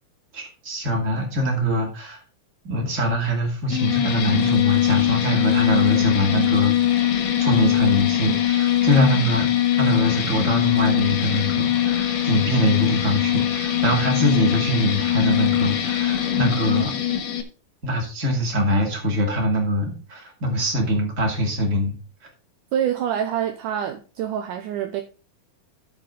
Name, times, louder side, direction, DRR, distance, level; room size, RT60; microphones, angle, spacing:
voice 1, 0.3-2.2 2.6-7.1 7.4-9.5 9.8-16.9 17.8-21.9, equal, 25° right, 2.3 m, -23 dB
sound 1, 3.7-17.4, left 11 dB, 60° left, 2.2 m, -22 dB
voice 2, 22.7-25.0, right 9 dB, 75° right, 2.1 m, -26 dB
13.5 x 4.7 x 3.9 m
omnidirectional pair, 4.2 m